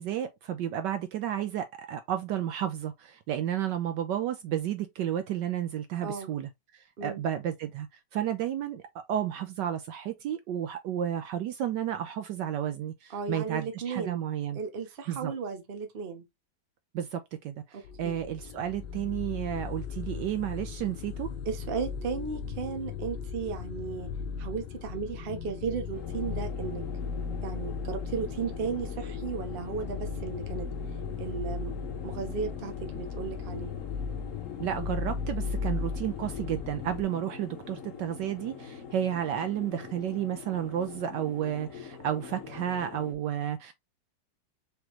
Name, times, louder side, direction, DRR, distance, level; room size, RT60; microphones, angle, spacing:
voice 1, 0.0-14.6 15.1-15.3 16.9-21.3 34.6-43.7, right 10 dB, 70° right, 1.1 m, -32 dB
voice 2, 6.0-6.3 7.0-7.2 13.1-14.2 14.5-16.2 17.7-18.2 21.5-24.1 24.4-26.8 27.4-30.7 31.2-31.7 32.0-33.7, right 5 dB, 45° right, 0.8 m, -35 dB
sound 1, 17.8-37.0, left 5 dB, 75° left, 1.2 m, -36 dB
sound 2, 25.9-43.1, left 6 dB, 45° left, 1.4 m, -44 dB
5.0 x 3.0 x 2.9 m
omnidirectional pair, 2.1 m